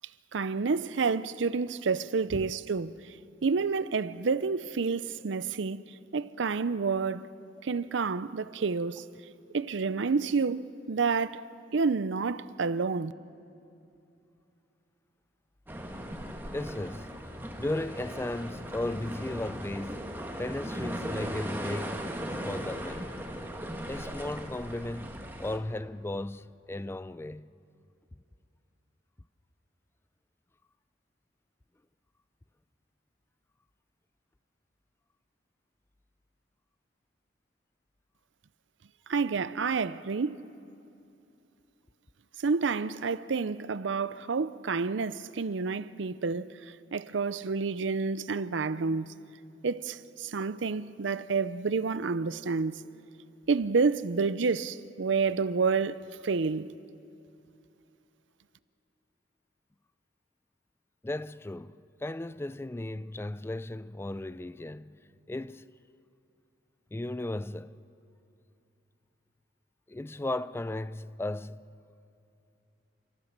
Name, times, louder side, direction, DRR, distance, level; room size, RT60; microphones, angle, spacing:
voice 1, 0.3-3.1 3.4-7.2 7.6-9.0 9.5-11.5 11.7-13.1 39.1-40.4 42.4-46.5 46.9-49.2 49.6-52.9 53.5-56.7, right 4 dB, 75° right, 0.6 m, -29 dB
sound 1, 15.7-25.6, equal, 10° right, 1.5 m, -38 dB
voice 2, 16.5-17.1 17.6-22.1 22.4-23.1 23.9-27.5 61.0-65.0 65.3-65.7 66.9-67.8 69.9-71.7, left 1 dB, 15° left, 0.4 m, -36 dB
29.5 x 14.0 x 6.6 m
head